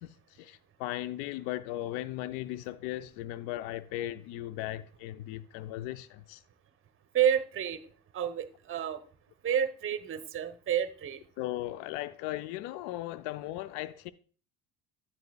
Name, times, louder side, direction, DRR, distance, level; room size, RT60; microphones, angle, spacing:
voice 1, 0.0-6.4 11.4-14.1, left 15 dB, 60° left, 0.6 m, -37 dB
voice 2, 7.1-7.8 8.1-9.0 9.4-11.2, right 9 dB, 25° right, 0.8 m, -29 dB
10.5 x 8.9 x 2.3 m
hypercardioid pair, 70°, 49 cm